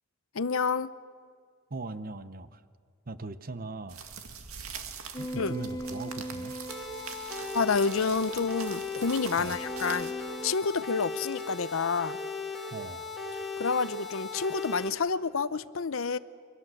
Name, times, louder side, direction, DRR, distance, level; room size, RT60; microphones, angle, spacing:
voice 1, 0.3-0.9 5.4-5.5 7.5-10.1 10.4-12.2 13.6-16.2, left 5 dB, 70° left, 15 dB, 0.7 m, -29 dB
voice 2, 1.7-2.6 3.1-4.0 5.2-6.5 9.4-9.6 12.7-13.1, right 3 dB, 40° right, 12 dB, 0.9 m, -39 dB
sound 1, 3.9-10.1, right 6 dB, 85° right, 2.1 m, -44 dB
sound 2, 5.1-10.6, right 1 dB, 20° left, 0.7 m, -41 dB
sound 3, 6.7-14.9, left 4 dB, ahead, 2.1 m, -37 dB
26.5 x 24.5 x 7.7 m, 2.1 s
head